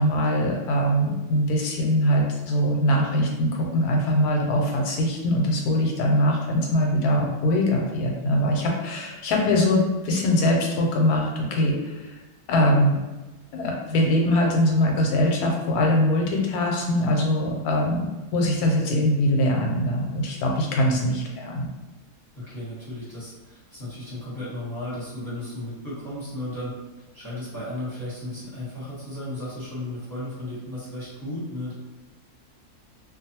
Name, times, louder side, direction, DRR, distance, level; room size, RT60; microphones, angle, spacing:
voice 1, 0.0-12.0 12.5-13.0 13.5-18.1 18.3-21.7, left 1 dB, 90° left, 0 dB, 1.1 m, -22 dB
voice 2, 22.4-31.7, left 1 dB, 15° left, -11 dB, 0.9 m, -34 dB
2.5 x 2.3 x 2.8 m, 1.1 s
omnidirectional pair, 1.6 m